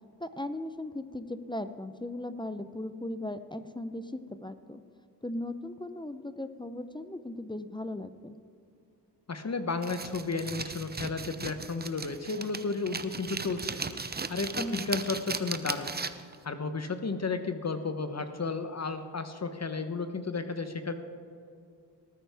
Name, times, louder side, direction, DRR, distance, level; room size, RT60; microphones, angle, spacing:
voice 1, 0.2-4.8 5.2-8.3 14.6-15.0, left 1 dB, 10° left, 11 dB, 0.6 m, -38 dB
voice 2, 9.3-16.0 16.4-20.9, left 4 dB, 40° left, 8 dB, 1.0 m, -33 dB
sound 1, 9.8-16.4, right 4 dB, 25° right, 0.7 m, -37 dB
18.5 x 9.2 x 3.5 m, 2.5 s
cardioid pair, 50°, 42 cm